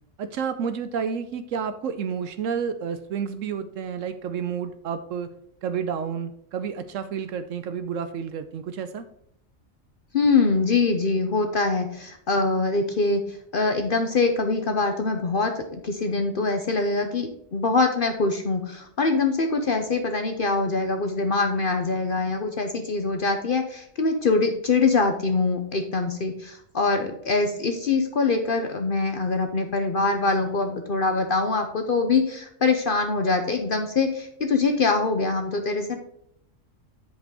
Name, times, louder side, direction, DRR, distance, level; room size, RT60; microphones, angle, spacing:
voice 1, 0.2-5.3 5.6-9.0, right 7 dB, 75° right, 10 dB, 1.0 m, -30 dB
voice 2, 10.1-36.0, left 3 dB, 50° left, 5 dB, 0.8 m, -24 dB
7.8 x 5.2 x 4.7 m, 0.72 s
omnidirectional pair, 1.4 m